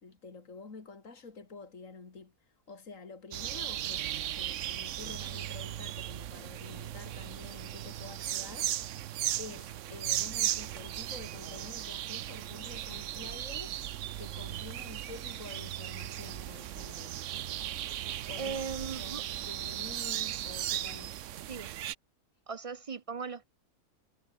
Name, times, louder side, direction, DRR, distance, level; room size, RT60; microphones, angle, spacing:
voice 1, 0.0-9.0 9.4-17.2 18.3-21.2, left 4 dB, 65° left, 3.0 m, -49 dB
sound 1, 3.3-21.9, right 12 dB, 65° right, 1.0 m, -37 dB
voice 2, 18.4-19.2 21.5-21.7 22.5-23.5, right 5 dB, 50° right, 0.4 m, -38 dB
omnidirectional pair, 1.4 m